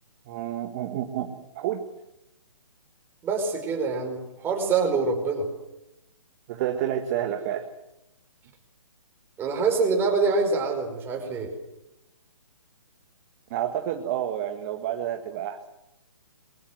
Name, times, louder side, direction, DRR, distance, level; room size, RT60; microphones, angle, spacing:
voice 1, 0.3-1.8 6.5-7.7 13.5-15.6, right 11 dB, 30° right, 6 dB, 1.7 m, -29 dB
voice 2, 3.2-5.5 9.4-11.5, right 4 dB, 15° right, 3 dB, 4.9 m, -25 dB
23.0 x 23.0 x 7.9 m, 0.87 s
hypercardioid pair, 150°, 17 cm